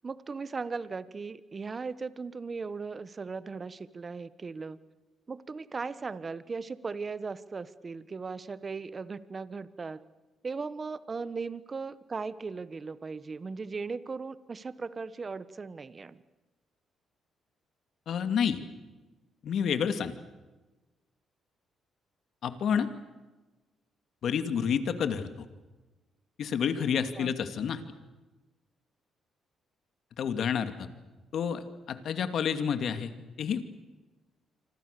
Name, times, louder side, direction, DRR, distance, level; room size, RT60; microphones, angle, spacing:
voice 1, 0.0-4.8 5.3-10.0 10.4-16.2 27.2-27.3, right 4 dB, 35° right, 15 dB, 1.3 m, -38 dB
voice 2, 18.1-18.6 19.4-20.1 22.4-22.9 24.2-25.4 26.4-27.8 30.2-30.9 31.3-31.6 31.9-33.7, left 7 dB, 65° left, 9 dB, 2.4 m, -29 dB
28.0 x 25.5 x 6.9 m, 1.2 s
cardioid pair, 90°, 0 cm